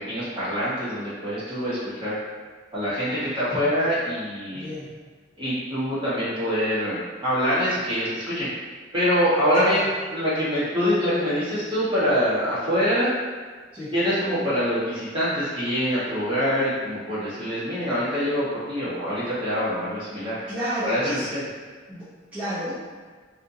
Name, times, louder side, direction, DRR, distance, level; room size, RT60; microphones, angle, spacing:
voice 1, 0.0-2.1 2.7-4.7 5.4-8.5 8.9-13.1 13.9-20.4 20.8-21.4, equal, 25° right, -11 dB, 1.2 m, -25 dB
voice 2, 4.5-4.9 9.7-9.8 13.7-13.9 20.5-21.3 21.9-22.7, equal, 10° right, -16 dB, 0.9 m, -31 dB
3.5 x 2.5 x 2.7 m, 1.5 s
head